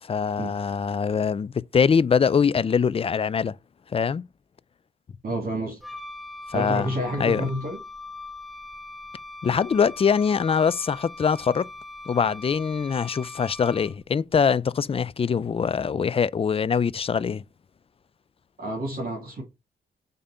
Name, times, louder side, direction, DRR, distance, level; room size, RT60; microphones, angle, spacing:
voice 1, 0.0-3.6 3.9-4.2 6.5-7.5 9.4-11.7 12.1-17.4, left 6 dB, 30° left, 0.4 m, -23 dB
voice 2, 5.2-5.8 6.5-7.8 18.6-19.4, right 1 dB, 55° right, 2.4 m, -29 dB
Wind instrument woodwind instrument, 5.8-14.1, left 2 dB, ahead, 0.7 m, -41 dB
5.1 x 3.5 x 5.4 m
cardioid pair, 60°, 18 cm